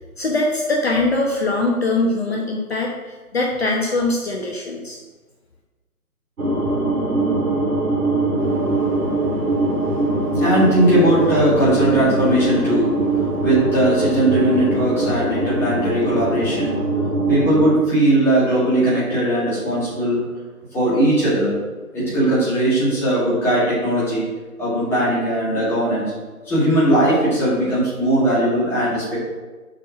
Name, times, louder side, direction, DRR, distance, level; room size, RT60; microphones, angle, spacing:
voice 1, 0.2-5.0, left 2 dB, 40° left, 0 dB, 1.0 m, -22 dB
sound 1, 6.4-17.7, right 2 dB, 65° right, 2.2 m, -22 dB
voice 2, 8.3-20.3 20.7-21.5 21.9-24.2 24.6-26.1 26.5-29.2, right 1 dB, 5° left, -10 dB, 2.0 m, -19 dB
6.8 x 5.7 x 6.2 m, 1.3 s
figure-of-eight pair, 150°, 46 cm